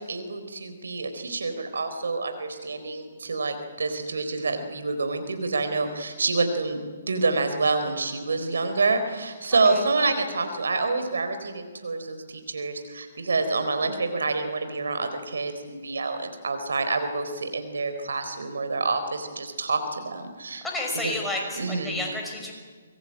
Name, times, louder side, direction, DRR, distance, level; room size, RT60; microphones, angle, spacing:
voice 1, 0.0-20.6 21.0-21.1 21.6-22.0, right 3 dB, 70° right, 8 dB, 3.9 m, -27 dB
voice 2, 20.6-22.5, left 2 dB, 5° left, 0 dB, 5.9 m, -31 dB
25.0 x 21.5 x 8.8 m, 1.5 s
figure-of-eight pair, 130°, 0 cm